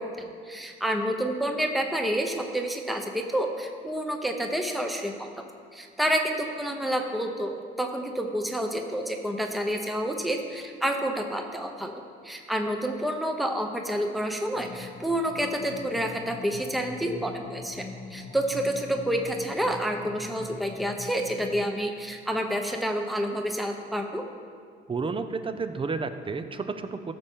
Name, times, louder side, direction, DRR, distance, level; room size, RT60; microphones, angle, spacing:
voice 1, 0.0-24.3, equal, ahead, 3 dB, 0.9 m, -29 dB
sound 1, 14.6-21.7, left 3 dB, 45° left, 0.8 m, -43 dB
voice 2, 24.9-27.1, right 4 dB, 25° right, 9 dB, 0.7 m, -31 dB
14.5 x 6.9 x 3.8 m, 2.1 s
cardioid pair, 90°, 20 cm